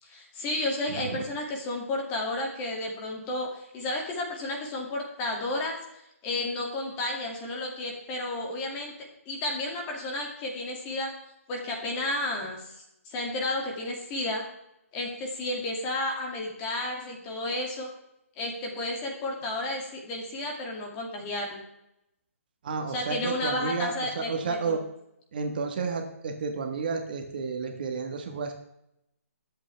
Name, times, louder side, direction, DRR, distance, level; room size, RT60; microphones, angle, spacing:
voice 1, 0.0-5.8 6.2-8.9 9.3-11.1 11.5-14.4 14.9-17.9 18.4-21.6 22.9-24.8, left 2 dB, 15° left, 0 dB, 2.4 m, -32 dB
voice 2, 0.9-1.2 22.6-24.8 25.3-28.5, right 4 dB, 40° right, 4 dB, 1.5 m, -31 dB
22.0 x 8.1 x 3.4 m, 0.82 s
hypercardioid pair, 170°, 8 cm